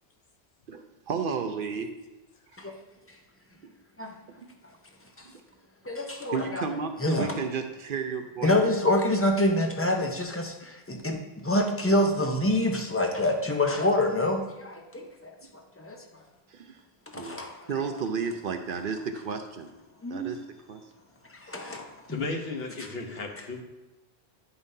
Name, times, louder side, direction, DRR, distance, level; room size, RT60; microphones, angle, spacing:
voice 1, 0.7-1.9 2.6-2.7 4.4-4.5 6.3-8.6 16.5-16.8 17.2-17.4 17.7-19.7 20.1-20.4 20.7-20.8 21.5-21.6, right 5 dB, 60° right, 6 dB, 0.7 m, -32 dB
voice 2, 5.8-6.6 7.0-7.4 8.4-15.3 15.8-16.0 17.1-17.9 20.0-20.4 21.3-22.2, left 1 dB, 15° left, 2 dB, 0.7 m, -26 dB
voice 3, 21.5-23.6, left 4 dB, 70° left, 3 dB, 1.1 m, -36 dB
9.8 x 5.4 x 2.7 m, 1.1 s
omnidirectional pair, 1.1 m